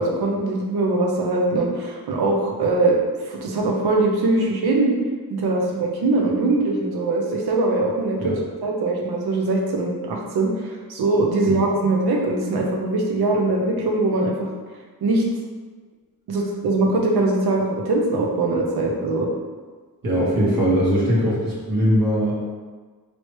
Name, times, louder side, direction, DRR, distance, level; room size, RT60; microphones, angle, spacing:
voice 1, 0.0-3.0 3.2-4.9 5.3-8.3 8.6-14.5 15.0-15.2 16.3-19.3, right 2 dB, 85° right, 0 dB, 0.7 m, -22 dB
voice 2, 20.0-22.3, equal, 65° right, -7 dB, 1.2 m, -20 dB
3.3 x 2.7 x 3.1 m, 1.4 s
cardioid pair, 50°, 37 cm